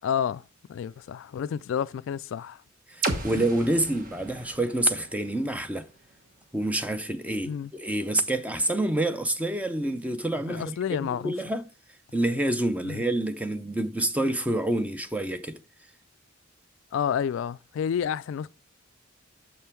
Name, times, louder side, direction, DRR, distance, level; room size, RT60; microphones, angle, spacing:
voice 1, 0.0-0.4 0.7-2.6 3.3-3.4 7.4-7.7 10.5-11.3 12.8-13.0 16.9-18.5, left 8 dB, 65° left, 0.3 m, -30 dB
voice 2, 2.9-5.9 6.5-10.8 11.2-11.6 12.1-15.6, right 1 dB, 5° right, 0.6 m, -27 dB
sound 1, 3.0-6.9, right 2 dB, 45° right, 1.3 m, -36 dB
6.7 x 5.5 x 4.4 m
head